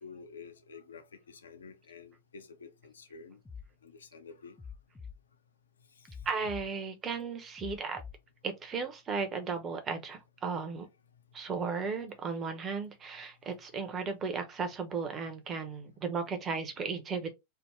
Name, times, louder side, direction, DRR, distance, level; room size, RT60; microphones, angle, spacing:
voice 1, 0.0-3.4 3.8-4.5, left 5 dB, 70° left, 0.6 m, -50 dB
sound 1, 3.4-3.7 4.6-5.2 6.1-6.7 7.6-8.2, left 6 dB, 10° left, 0.3 m, -45 dB
voice 2, 6.2-8.0 8.4-10.9 11.3-17.3, right 5 dB, 25° right, 0.8 m, -35 dB
3.4 x 2.1 x 3.2 m
figure-of-eight pair, 90°, 0 cm